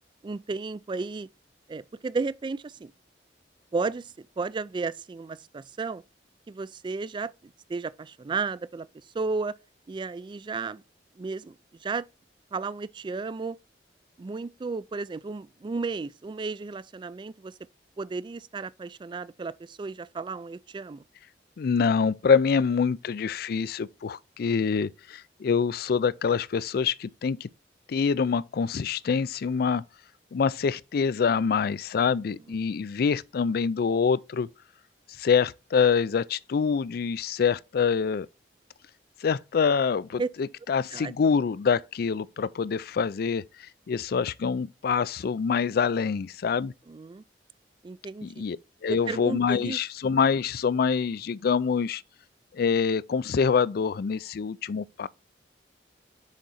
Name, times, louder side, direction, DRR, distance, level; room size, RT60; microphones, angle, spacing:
voice 1, 0.2-1.3 1.7-2.9 3.7-6.0 6.5-8.9 9.1-9.5 9.9-10.8 11.2-11.6 11.8-12.1 12.5-13.6 14.2-17.5 18.0-21.0 40.2-40.3 40.9-41.1 46.9-47.2 47.8-48.4 48.9-49.8, right 4 dB, 25° right, 0.3 m, -33 dB
voice 2, 21.6-27.5 27.9-29.8 30.3-34.5 35.2-38.3 39.2-43.4 43.9-46.7 48.2-48.6 48.8-52.0 52.5-55.1, left 6 dB, 60° left, 0.4 m, -25 dB
6.4 x 4.8 x 4.2 m
head